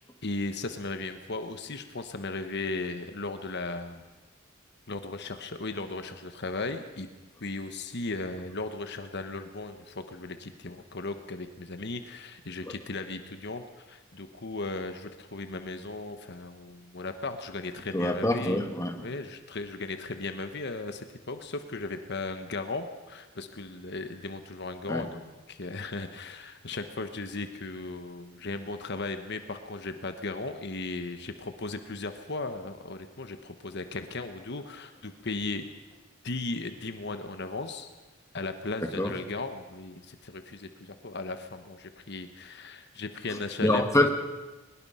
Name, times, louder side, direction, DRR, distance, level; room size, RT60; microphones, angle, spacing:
voice 1, 0.2-4.1 4.9-7.1 7.4-18.6 19.0-35.7 36.2-37.9 38.3-44.1, left 3 dB, 55° left, 8 dB, 1.3 m, -36 dB
voice 2, 17.9-19.1 24.9-25.1 39.0-39.1 43.6-44.1, left 1 dB, 15° left, 4 dB, 1.7 m, -25 dB
22.0 x 21.0 x 5.7 m, 1.2 s
head